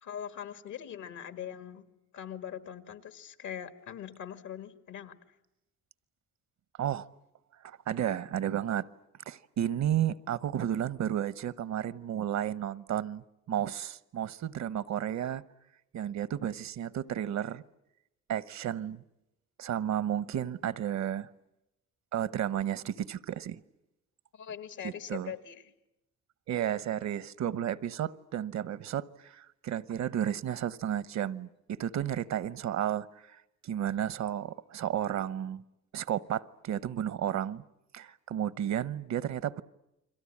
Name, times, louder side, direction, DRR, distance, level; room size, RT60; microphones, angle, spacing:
voice 1, 0.0-1.8 2.1-5.1 24.3-25.7, left 9 dB, 75° left, 2.1 m, -42 dB
voice 2, 7.6-8.9 9.3-15.4 15.9-17.6 18.3-19.0 19.6-21.3 22.1-23.6 24.8-25.3 26.5-35.6 35.9-37.6 37.9-39.6, right 10 dB, 65° right, 0.9 m, -32 dB
29.5 x 22.5 x 8.6 m
cardioid pair, 90°, 30 cm